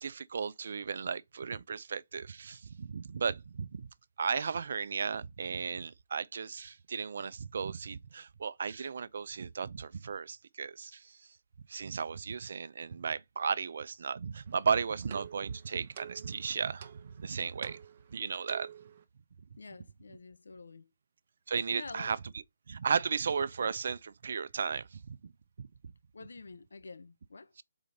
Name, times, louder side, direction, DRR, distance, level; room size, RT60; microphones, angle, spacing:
voice 1, 0.0-3.9 4.2-11.1 11.7-17.8 18.1-18.7 21.5-22.2 22.7-25.2 25.6-25.7, right 6 dB, 60° right, 0.5 m, -35 dB
sound 1, 14.5-19.0, right 8 dB, 35° right, 0.9 m, -51 dB
voice 2, 19.6-20.9 21.7-22.1 26.1-27.5, left 3 dB, 80° left, 0.6 m, -48 dB
4.9 x 4.0 x 5.1 m
hypercardioid pair, 160°, 0 cm